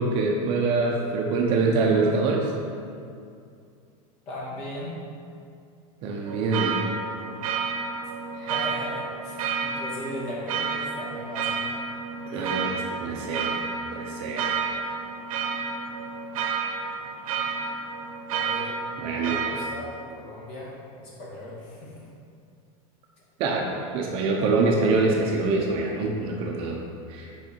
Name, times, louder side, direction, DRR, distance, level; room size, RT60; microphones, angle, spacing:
voice 1, 0.0-2.5 6.0-6.8 12.3-13.6 13.9-14.6 19.0-19.4 23.4-26.8 27.1-27.3, right 3 dB, 35° right, 0 dB, 0.8 m, -25 dB
voice 2, 4.3-4.9 8.3-11.6 18.3-18.7 19.1-22.0, left 1 dB, 40° left, -5 dB, 2.1 m, -38 dB
sound 1, 6.3-19.7, right 5 dB, 85° right, 1.0 m, -31 dB
8.2 x 5.7 x 4.6 m, 2.4 s
supercardioid pair, 175°, 17 cm